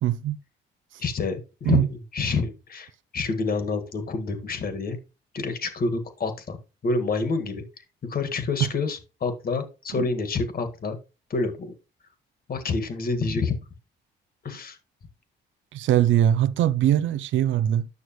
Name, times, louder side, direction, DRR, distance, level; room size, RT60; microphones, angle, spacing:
voice 1, 0.0-0.4 1.7-1.9 8.6-8.7 9.9-10.1 15.7-17.9, right 11 dB, 75° right, 0.5 m, -21 dB
voice 2, 1.0-5.0 5.3-6.6 6.8-7.6 8.1-11.0 11.3-11.7 12.5-13.6 14.4-14.8, left 4 dB, 50° left, 1.8 m, -28 dB
9.6 x 6.3 x 3.0 m
cardioid pair, 90°, 20 cm